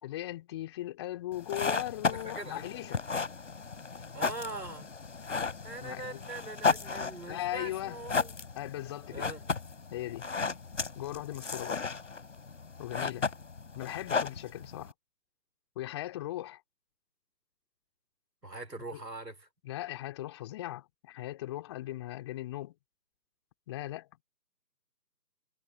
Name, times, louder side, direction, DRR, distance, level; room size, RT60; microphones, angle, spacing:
voice 1, 0.0-3.0 5.8-6.2 7.3-8.0 8.6-9.3 9.9-10.3 10.9-11.8 12.8-13.3 13.7-14.9 15.8-16.6 18.9-19.0 19.6-22.7 23.7-24.1, left 15 dB, 15° left, 4.0 m, -38 dB
sound 1, 1.3-14.9, left 4 dB, 45° left, 5.2 m, -35 dB
voice 2, 2.1-2.6 4.1-4.9 5.6-8.3 9.1-9.4 18.4-19.5, right 2 dB, 75° right, 4.9 m, -42 dB
figure-of-eight pair, 155°, 50 cm